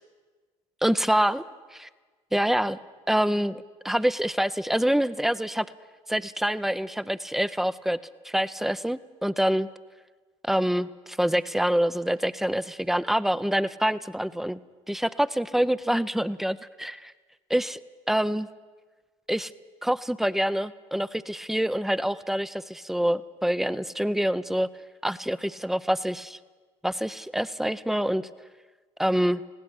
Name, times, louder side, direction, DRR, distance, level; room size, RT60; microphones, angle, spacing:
voice 1, 0.8-1.4 1.7-1.9 2.3-2.8 3.1-5.7 6.1-8.0 8.2-9.7 10.4-14.6 14.9-17.1 17.5-17.8 18.1-18.5 19.3-19.5 19.8-24.7 25.0-26.4 26.8-28.3 29.0-29.4, equal, ahead, 15 dB, 0.7 m, -26 dB
19.5 x 17.0 x 8.1 m, 1.4 s
hypercardioid pair, 60°, 16 cm